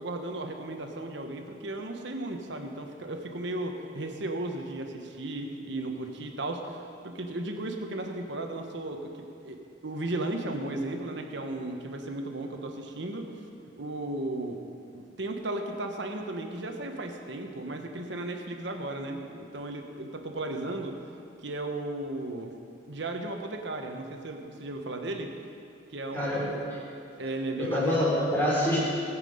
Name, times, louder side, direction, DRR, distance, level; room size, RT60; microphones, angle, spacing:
voice 1, 0.0-9.6 9.8-13.3 13.8-14.6 14.9-21.0 21.4-22.5 22.9-25.3 25.9-26.4 27.2-28.1, right 2 dB, 65° right, 4 dB, 1.2 m, -35 dB
voice 2, 26.1-26.8 27.6-28.8, left 1 dB, 10° left, -7 dB, 3.6 m, -26 dB
20.5 x 7.6 x 5.0 m, 2.5 s
head